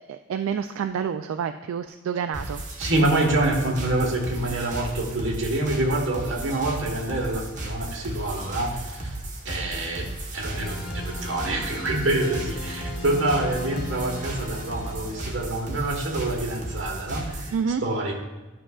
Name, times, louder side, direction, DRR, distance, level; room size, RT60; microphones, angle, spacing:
voice 1, 0.1-2.7 17.5-17.8, right 7 dB, 85° right, 8 dB, 0.3 m, -28 dB
sound 1, 2.3-17.6, right 1 dB, 35° right, 1.2 m, -35 dB
voice 2, 2.8-9.1 9.4-10.1 10.3-17.5 17.8-18.1, right 2 dB, 65° right, 0 dB, 1.3 m, -26 dB
sound 2, 10.5-15.7, left 2 dB, 45° left, 1.4 m, -38 dB
11.0 x 6.1 x 2.4 m, 1.2 s
head